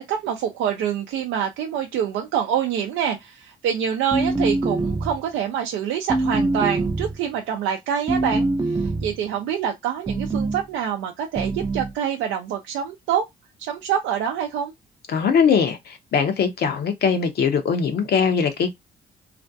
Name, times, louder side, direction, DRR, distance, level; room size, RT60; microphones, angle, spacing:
voice 1, 0.0-13.3 13.6-14.7, right 9 dB, 80° right, 0.4 m, -26 dB
sound 1, 4.1-5.2 6.1-7.2 8.1-9.2 10.1-10.6 11.4-11.9, right 2 dB, 20° right, 0.4 m, -24 dB
voice 2, 15.1-18.8, left 6 dB, 55° left, 0.6 m, -21 dB
2.4 x 2.2 x 2.5 m
supercardioid pair, 65°, 20 cm